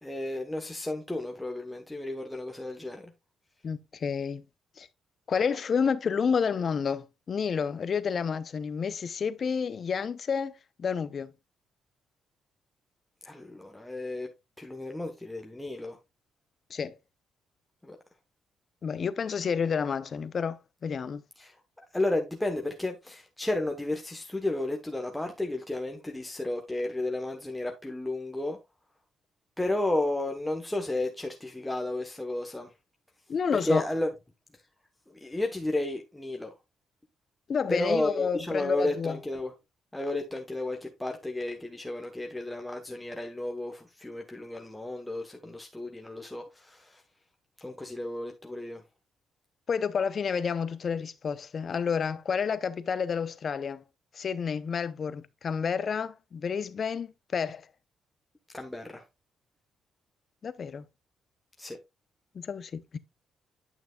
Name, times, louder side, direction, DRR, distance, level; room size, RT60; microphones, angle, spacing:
voice 1, 0.0-3.1 13.2-14.3 14.6-16.0 17.8-18.0 21.4-28.6 29.6-32.7 33.5-34.1 35.1-36.5 37.7-39.5 39.9-47.0 47.6-48.8 58.5-59.0 61.6-61.8, left 2 dB, 10° left, 1.0 m, -32 dB
voice 2, 3.6-4.4 4.8-4.9 5.3-11.3 16.7-17.0 18.8-21.2 33.3-33.8 37.5-39.2 49.7-53.8 54.1-57.6 60.4-60.8 62.3-63.0, left 6 dB, 50° left, 0.6 m, -30 dB
9.1 x 6.0 x 2.3 m
cardioid pair, 90°, 0 cm